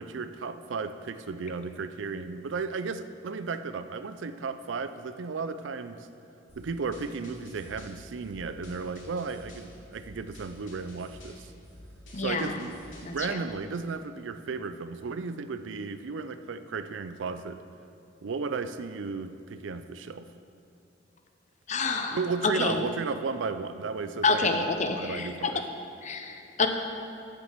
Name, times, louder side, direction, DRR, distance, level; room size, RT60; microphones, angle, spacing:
voice 1, 0.0-6.1 6.6-11.5 12.2-17.6 18.2-20.3 22.1-24.6 25.0-25.6, right 4 dB, 75° right, 11 dB, 0.4 m, -34 dB
sound 1, 6.5-13.2, left 1 dB, 80° left, 2.7 m, -50 dB
voice 2, 12.1-12.6 13.0-13.5 21.7-22.9 24.2-25.5 26.0-26.7, left 3 dB, 40° left, 5 dB, 0.7 m, -28 dB
7.5 x 6.9 x 7.4 m, 2.7 s
head